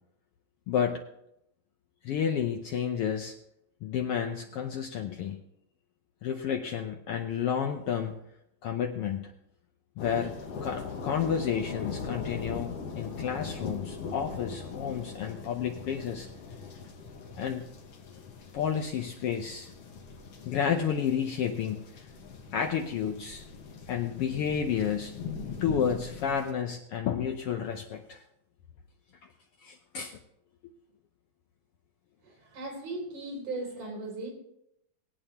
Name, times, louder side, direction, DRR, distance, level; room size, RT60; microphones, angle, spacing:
voice 1, 0.7-1.0 2.0-3.3 3.8-5.4 6.2-8.2 8.6-9.3 10.0-10.4 10.6-16.3 17.4-17.7 18.5-19.7 20.4-21.8 22.5-23.4 23.9-25.2 25.6-28.2 29.6-30.2, left 8 dB, 85° left, 3 dB, 1.2 m, -31 dB
sound 1, 10.0-26.5, left 5 dB, 55° left, 2.2 m, -41 dB
voice 2, 32.2-34.3, right 2 dB, 75° right, 0 dB, 5.4 m, -37 dB
20.5 x 8.8 x 2.9 m, 0.79 s
omnidirectional pair, 3.5 m